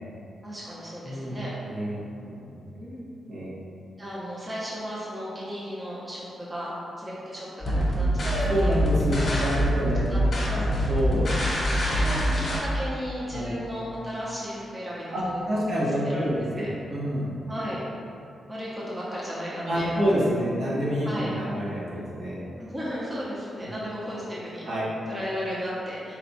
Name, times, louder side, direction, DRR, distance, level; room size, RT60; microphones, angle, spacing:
voice 1, 0.4-1.5 2.7-3.0 4.0-8.2 8.6-8.8 9.9-10.6 10.8-11.0 11.7-15.7 16.1-16.3 16.6-16.7 17.5-17.8 18.5-20.0 21.0-21.3 22.6-24.7 25.1-26.2, equal, 15° right, -8 dB, 0.7 m, -35 dB
voice 2, 1.0-1.4 1.6-2.0 2.2-2.6 3.3-3.5 8.5-11.3 13.3-13.5 15.1-17.3 19.7-22.4 23.6-23.7 24.6-24.9, equal, 70° right, -8 dB, 1.1 m, -28 dB
sound 1, 7.6-12.6, equal, 45° left, 1.0 m, -24 dB
4.3 x 2.3 x 4.0 m, 2.6 s
wide cardioid pair, 150°, 0 cm